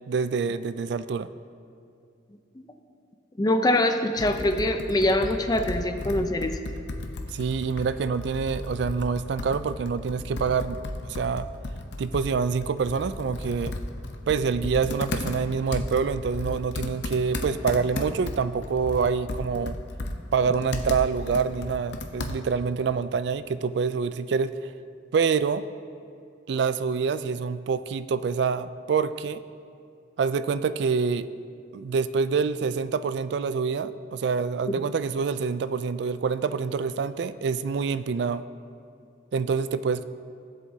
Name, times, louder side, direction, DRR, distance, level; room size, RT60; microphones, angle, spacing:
voice 1, 0.1-1.3 7.3-11.5 12.0-13.8 14.3-19.8 20.3-24.5 25.1-25.6 26.5-29.4 30.2-31.3 31.7-38.4 39.3-40.0, right 5 dB, 60° right, 14 dB, 0.3 m, -26 dB
voice 2, 3.4-6.6, left 1 dB, 20° left, 6 dB, 0.5 m, -24 dB
Computer keyboard, 4.2-22.7, left 2 dB, 65° left, 0.7 m, -35 dB
17.0 x 7.6 x 2.8 m, 2.5 s
head